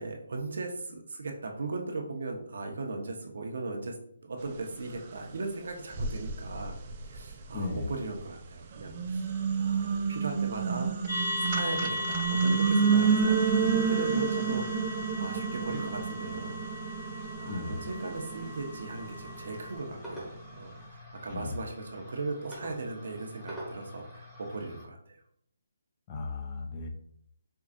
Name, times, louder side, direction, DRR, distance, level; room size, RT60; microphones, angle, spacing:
voice 1, 0.0-4.0 4.2-6.8 7.1-10.9 11.4-16.6 17.1-20.3 20.5-25.2, right 3 dB, 65° right, 1 dB, 0.8 m, -38 dB
sound 1, 5.2-5.3 5.9-8.2 8.7-20.0, right 6 dB, 30° right, 0.4 m, -30 dB
voice 2, 7.5-7.9 17.5-17.8 21.3-21.6 26.1-26.9, left 3 dB, 25° left, 4 dB, 0.5 m, -35 dB
sound 2, 11.1-19.8, left 1 dB, 60° left, 1.5 m, -37 dB
sound 3, 13.5-24.8, left 1 dB, 5° left, 0.9 m, -48 dB
4.5 x 2.4 x 2.5 m, 0.68 s
hypercardioid pair, 160°, 0 cm